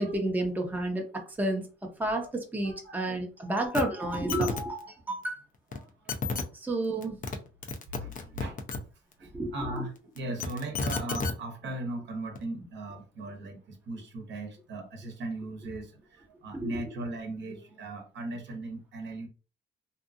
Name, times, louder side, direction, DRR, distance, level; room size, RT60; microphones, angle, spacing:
voice 1, 0.0-1.6 2.0-5.4 6.5-7.2 9.3-9.5 16.5-16.7, right 1 dB, 10° right, 0.7 m, -30 dB
voice 2, 2.6-3.2 5.0-5.1 5.7-6.3 6.8-6.9 8.0-8.8 9.2-19.3, right 2 dB, 65° right, 0.9 m, -38 dB
sound 1, 3.7-3.8 4.1-4.6 5.7-5.8 6.1-6.4 7.0-7.4 7.6-8.8 10.2-11.3 12.4-12.5, left 4 dB, 45° left, 0.6 m, -31 dB
2.8 x 2.4 x 2.5 m
cardioid pair, 90°, 20 cm